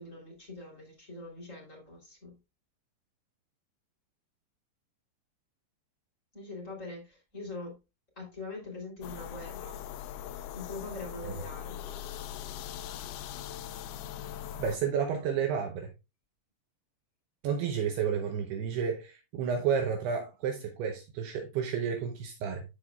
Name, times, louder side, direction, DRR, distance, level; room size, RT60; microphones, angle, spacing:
voice 1, 0.0-2.3 6.3-7.8 8.2-9.8 10.5-12.0, left 2 dB, 20° left, 2.9 m, -43 dB
sound 1, 9.0-14.8, left 10 dB, 85° left, 2.3 m, -41 dB
voice 2, 14.5-15.9 17.4-22.6, right 7 dB, 75° right, 2.8 m, -31 dB
13.5 x 4.8 x 2.3 m
omnidirectional pair, 5.0 m